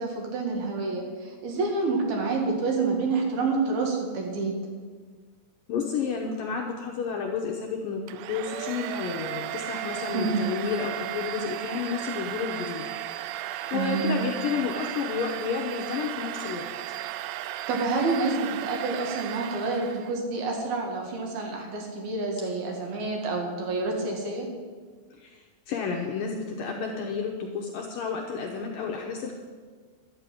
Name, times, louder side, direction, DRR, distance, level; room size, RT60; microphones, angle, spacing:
voice 1, 0.0-4.5 10.1-10.4 13.7-14.1 17.7-24.5, right 3 dB, 65° right, 1 dB, 3.5 m, -28 dB
voice 2, 5.7-8.0 8.3-12.9 13.1-13.3 13.7-16.7 25.2-29.4, left 6 dB, 70° left, 0 dB, 2.2 m, -31 dB
Domestic sounds home sounds, 8.1-20.2, right 13 dB, 85° right, 2.8 m, -35 dB
12.0 x 6.6 x 9.1 m, 1.5 s
omnidirectional pair, 4.9 m